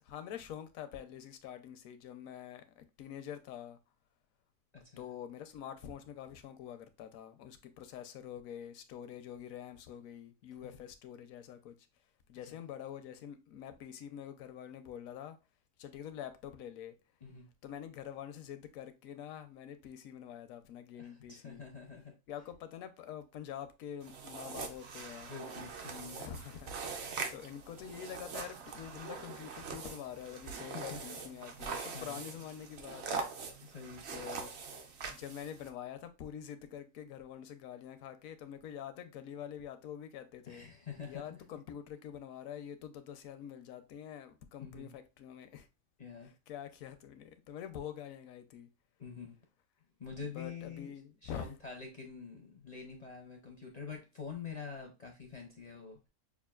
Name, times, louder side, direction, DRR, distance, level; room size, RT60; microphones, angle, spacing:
voice 1, 0.0-3.8 5.0-11.9 12.3-15.4 15.8-17.0 17.6-21.7 22.3-25.3 26.2-33.3 34.1-34.5 35.1-40.7 41.1-45.7 46.2-48.7 50.2-51.5, left 9 dB, 80° left, 1.0 m, -46 dB
voice 2, 4.7-5.1 10.6-10.7 17.2-17.5 21.0-22.2 25.3-26.2 30.4-31.0 31.9-32.2 33.6-34.0 40.5-41.4 44.6-44.9 46.0-46.3 49.0-49.4 50.0-50.9 51.2-56.1, left 6 dB, 50° left, 0.5 m, -46 dB
sound 1, 24.0-35.7, right 5 dB, 60° right, 0.9 m, -43 dB
5.8 x 2.4 x 2.3 m
omnidirectional pair, 1.4 m